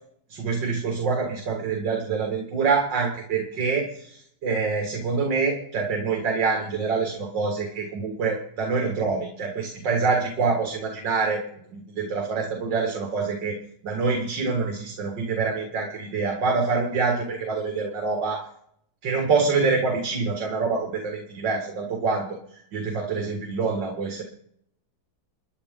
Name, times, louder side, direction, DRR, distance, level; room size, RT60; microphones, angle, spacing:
voice 1, 0.3-11.4 11.7-13.6 13.8-18.4 19.0-22.4 22.7-24.2, right 4 dB, 80° right, 2 dB, 2.5 m, -26 dB
30.0 x 10.5 x 3.8 m, 0.71 s
omnidirectional pair, 1.9 m